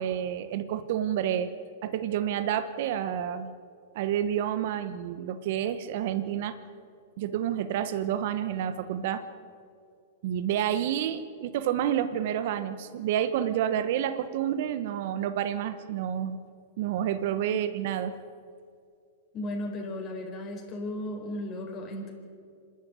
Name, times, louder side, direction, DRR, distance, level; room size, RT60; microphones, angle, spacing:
voice 1, 0.0-1.5 1.8-3.5 3.9-6.6 7.2-9.2 10.2-16.4 16.8-18.1, right 10 dB, 60° right, 11 dB, 1.2 m, -29 dB
voice 2, 19.3-22.1, left 1 dB, 30° left, 0 dB, 4.5 m, -35 dB
26.5 x 10.5 x 9.6 m, 2.3 s
hypercardioid pair, 130°, 0 cm